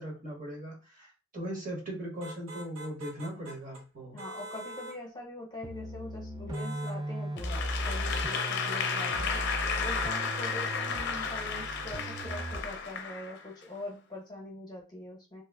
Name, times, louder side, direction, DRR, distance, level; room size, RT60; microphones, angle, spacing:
voice 1, 0.0-4.2, right 1 dB, 40° right, -1 dB, 1.2 m, -39 dB
sound 1, 2.2-3.8 4.2-5.0 6.5-7.0 7.9-8.9 9.3-10.2, right 1 dB, 75° right, 0.7 m, -44 dB
voice 2, 4.1-9.4 9.8-15.4, left 1 dB, 20° left, -2 dB, 0.9 m, -43 dB
sound 2, 5.6-12.8, right 1 dB, 20° right, 0.3 m, -37 dB
Applause / Crowd, 7.4-13.6, left 5 dB, 60° left, 0.5 m, -33 dB
3.2 x 2.9 x 2.3 m, 0.32 s
head